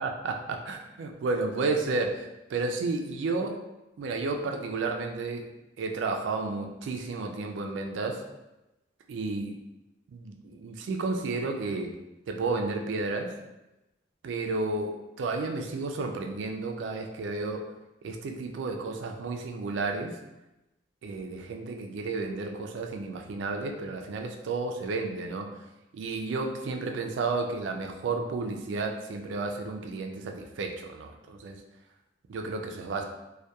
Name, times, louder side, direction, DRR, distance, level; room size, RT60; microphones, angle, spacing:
voice 1, 0.0-2.2 2.5-3.6 4.0-5.5 5.8-8.2 9.1-9.5 10.1-12.0 12.3-13.4 14.2-17.7 18.0-20.2 21.0-25.5 25.9-31.6 32.3-33.0, right 3 dB, 70° right, 4 dB, 0.3 m, -32 dB
2.8 x 2.2 x 2.2 m, 0.97 s
head